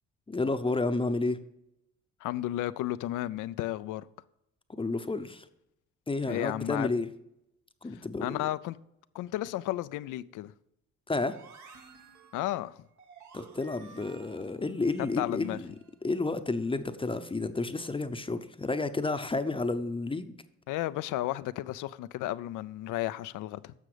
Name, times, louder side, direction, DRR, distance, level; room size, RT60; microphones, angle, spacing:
voice 1, 0.3-1.4 4.8-5.4 6.1-7.1 7.8-8.5 11.1-11.4 13.3-15.7 16.0-20.4, left 3 dB, 15° left, 0.7 m, -31 dB
voice 2, 2.2-4.1 6.3-6.9 8.2-8.8 9.1-10.5 12.3-12.7 15.2-15.6 20.7-23.7, left 15 dB, 85° left, 0.5 m, -33 dB
sound 1, 11.1-16.0, right 5 dB, 70° right, 1.6 m, -53 dB
10.0 x 6.7 x 4.9 m
cardioid pair, 90°, 30 cm